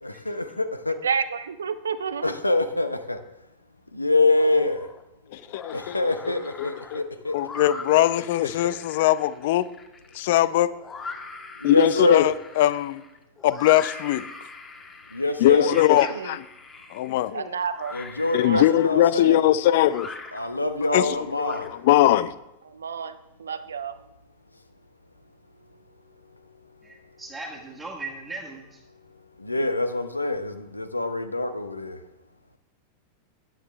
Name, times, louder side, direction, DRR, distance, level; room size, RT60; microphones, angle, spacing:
voice 1, 0.0-1.0 2.2-3.2 3.9-4.9 5.7-7.4 8.6-8.7 11.6-12.3 15.1-15.7 17.9-19.5 20.3-21.7 29.4-32.0, left 2 dB, 85° left, 0.8 m, -25 dB
voice 2, 1.0-2.4 16.1-16.4 17.3-17.9 18.4-18.6 22.6-24.0, right 6 dB, 70° right, 0.6 m, -30 dB
sound 1, 4.3-5.0 5.4-22.1, left 4 dB, 20° left, 1.4 m, -42 dB
voice 3, 5.3-6.0 6.3-7.0 7.3-9.7 10.1-10.7 11.6-13.0 13.4-14.3 15.4-16.4 16.9-17.4 18.3-20.1 20.9-22.3, left 13 dB, 50° left, 0.5 m, -21 dB
voice 4, 15.7-16.1 26.8-28.8, right 3 dB, 10° right, 1.6 m, -38 dB
15.0 x 10.0 x 3.2 m
figure-of-eight pair, 90°, 0 cm